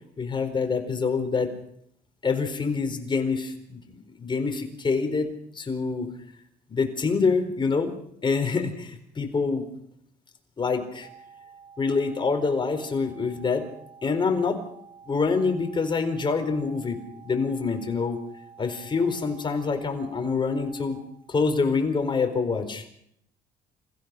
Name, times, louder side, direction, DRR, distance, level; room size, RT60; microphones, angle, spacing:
voice 1, 0.2-1.5 2.2-6.1 6.7-7.9 8.2-9.7 10.6-11.1 11.8-13.6 14.0-14.6 15.1-18.2 18.6-21.0 21.3-22.8, left 4 dB, 30° left, 6 dB, 4.5 m, -26 dB
sound 1, 11.0-21.0, right 6 dB, 60° right, 4.9 m, -50 dB
28.0 x 15.5 x 6.3 m, 0.71 s
cardioid pair, 110°, 17 cm